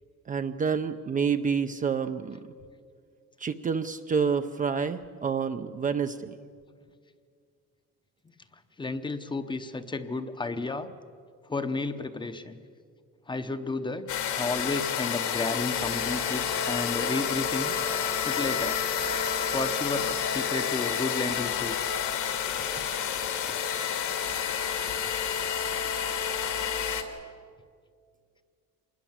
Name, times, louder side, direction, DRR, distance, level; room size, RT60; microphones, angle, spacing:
voice 1, 0.3-2.4 3.4-6.3, right 6 dB, 25° right, 7 dB, 0.6 m, -28 dB
voice 2, 8.8-10.9 11.5-12.6 13.3-14.1 14.3-17.7 18.2-18.8 19.5-21.9, left 3 dB, 15° left, 10 dB, 0.8 m, -32 dB
sound 1, 14.1-27.0, left 8 dB, 65° left, 2.3 m, -29 dB
26.5 x 20.5 x 7.4 m, 2.2 s
cardioid pair, 175°, 32 cm